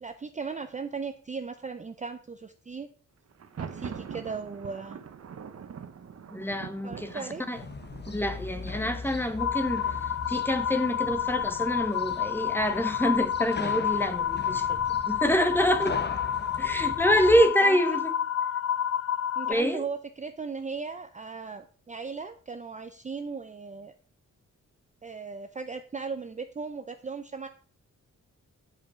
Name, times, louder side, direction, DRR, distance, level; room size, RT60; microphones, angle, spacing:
voice 1, 0.0-2.9 3.6-5.0 6.8-7.4 17.3-18.0 19.4-23.9 25.0-27.5, right 5 dB, 25° right, 0.5 m, -37 dB
Thunder, 3.3-11.1, right 7 dB, 55° right, 0.9 m, -44 dB
voice 2, 6.3-7.6 8.1-14.8 15.1-16.0 16.6-18.1 19.4-19.8, equal, 5° left, 1.0 m, -26 dB
sound 1, 7.5-17.4, left 4 dB, 35° left, 1.1 m, -40 dB
sound 2, 9.4-19.5, left 9 dB, 55° left, 0.5 m, -29 dB
10.0 x 5.4 x 6.2 m
wide cardioid pair, 160°, 30 cm